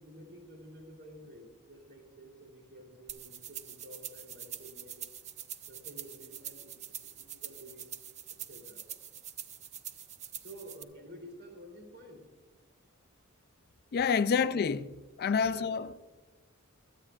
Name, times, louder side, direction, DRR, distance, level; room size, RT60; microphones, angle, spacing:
voice 1, 0.0-5.1 5.7-7.9 8.3-8.8 10.4-12.3 14.3-14.6 15.3-15.8, equal, 50° right, 3.3 m, -51 dB
sound 1, 3.1-10.8, right 10 dB, 30° right, 0.4 m, -45 dB
voice 2, 13.9-14.9 15.2-15.9, left 6 dB, 45° left, 0.3 m, -27 dB
25.5 x 8.7 x 2.4 m
head